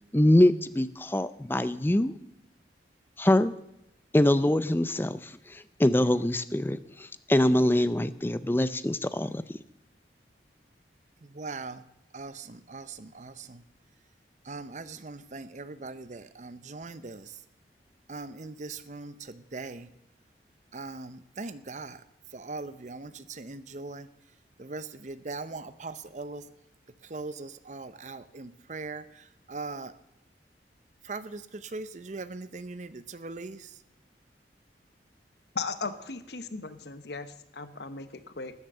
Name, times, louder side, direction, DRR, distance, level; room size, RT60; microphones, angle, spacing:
voice 1, 0.1-2.1 3.2-3.5 4.1-6.8 7.3-9.4, left 1 dB, 10° left, 14 dB, 0.5 m, -24 dB
voice 2, 11.2-11.8 12.1-13.6 14.4-17.4 18.1-19.9 20.7-22.0 22.3-24.1 24.6-26.4 27.0-29.9 31.0-33.8, right 3 dB, 45° right, 14 dB, 0.7 m, -40 dB
voice 3, 35.5-38.5, left 4 dB, 70° left, 11 dB, 1.0 m, -37 dB
13.0 x 9.8 x 6.7 m, 0.85 s
head